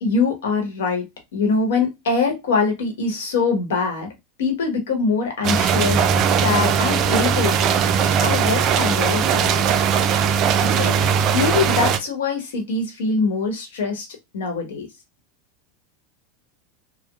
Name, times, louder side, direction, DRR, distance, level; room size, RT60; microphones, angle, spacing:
voice 1, 0.0-4.1 4.4-7.8 8.2-9.7 10.7-11.0 11.3-14.1 14.3-14.9, left 4 dB, 85° left, 1.0 m, -23 dB
sound 1, 5.4-12.0, right 7 dB, 45° right, 0.3 m, -19 dB
3.0 x 2.0 x 2.3 m
hypercardioid pair, 110°, 0 cm